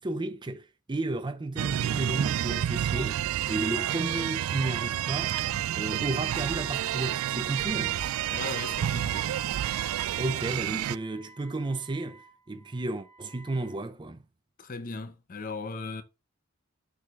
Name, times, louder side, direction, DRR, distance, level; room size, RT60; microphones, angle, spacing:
voice 1, 0.0-5.4 5.7-8.0 10.2-14.2, right 2 dB, 20° right, 0.5 m, -33 dB
sound 1, 1.6-11.0, right 11 dB, 90° right, 0.3 m, -29 dB
sound 2, 5.4-5.9 7.2-7.3 7.9-8.4, left 1 dB, 80° left, 2.5 m, -50 dB
Wind instrument woodwind instrument, 7.6-13.8, right 3 dB, 20° left, 1.7 m, -53 dB
voice 2, 8.3-9.3 14.6-16.0, left 4 dB, 45° left, 0.7 m, -37 dB
12.0 x 4.8 x 2.4 m
head